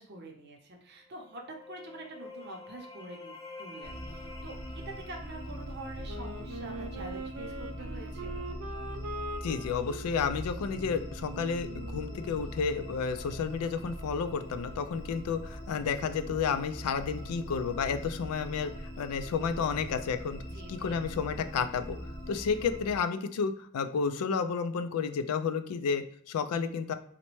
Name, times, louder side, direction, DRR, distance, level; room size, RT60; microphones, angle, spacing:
voice 1, 0.0-8.5 20.5-21.0, right 2 dB, 50° right, 2 dB, 0.7 m, -46 dB
sound 1, 1.0-6.7, left 3 dB, 15° left, 0.4 m, -49 dB
sound 2, 3.8-23.0, equal, 40° left, 1.1 m, -42 dB
Wind instrument woodwind instrument, 6.1-12.6, right 2 dB, 85° right, 0.4 m, -43 dB
voice 2, 9.4-20.4 20.7-22.0 22.3-26.9, left 6 dB, 85° left, 9 dB, 0.4 m, -31 dB
4.0 x 2.1 x 3.0 m, 0.65 s
head